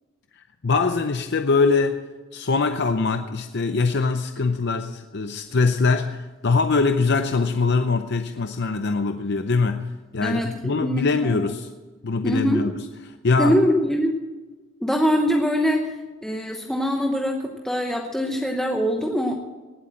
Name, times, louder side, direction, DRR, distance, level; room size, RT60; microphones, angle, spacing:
voice 1, 0.6-2.0 2.3-9.9 10.1-11.7 12.0-13.6, left 4 dB, 55° left, 8 dB, 0.6 m, -22 dB
voice 2, 10.2-11.3 12.2-12.6 13.4-14.2 14.8-15.8 16.2-19.3, equal, 5° left, 1 dB, 1.0 m, -23 dB
18.5 x 8.2 x 7.6 m, 1.3 s
head